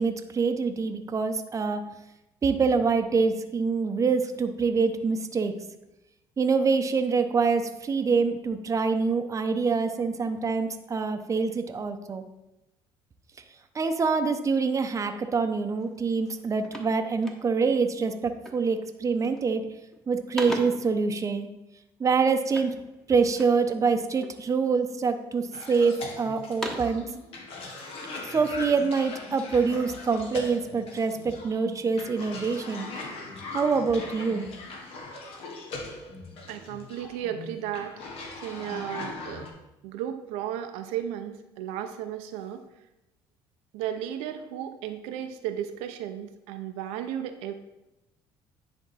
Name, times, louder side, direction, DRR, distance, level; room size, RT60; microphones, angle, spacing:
voice 1, 0.0-1.8 2.4-5.5 6.4-12.2 13.7-19.6 20.1-21.5 22.0-22.8 23.1-27.0 28.2-32.9 33.5-34.5, right 5 dB, 30° right, 7 dB, 0.7 m, -25 dB
sound 1, 15.8-16.0 16.2-17.8 18.4-18.8 19.1-19.6 19.9-21.0 22.5-23.7 24.2-24.8 25.3-26.0 26.4-27.1, right 1 dB, 5° left, 1.2 m, -40 dB
Cough, 25.5-39.5, left 3 dB, 65° left, 1.3 m, -40 dB
voice 2, 36.5-38.0 38.4-39.5 39.8-42.6 43.7-47.5, right 10 dB, 85° right, 7 dB, 0.6 m, -34 dB
10.0 x 3.5 x 4.1 m, 0.93 s
supercardioid pair, 85°, 11 cm